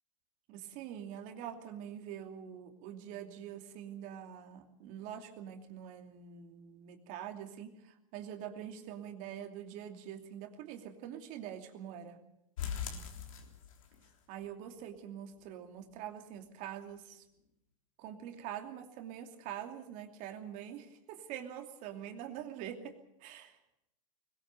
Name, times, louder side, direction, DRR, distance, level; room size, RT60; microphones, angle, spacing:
voice 1, 0.5-12.2 14.3-17.2 18.0-23.0 23.2-23.6, right 9 dB, 45° right, 5 dB, 2.8 m, -45 dB
sound 1, 12.6-14.1 14.4-14.5 14.9-15.0 15.4-15.5, left 8 dB, 75° left, 3.6 m, -40 dB
21.0 x 20.0 x 6.9 m, 0.81 s
hypercardioid pair, 110°, 17 cm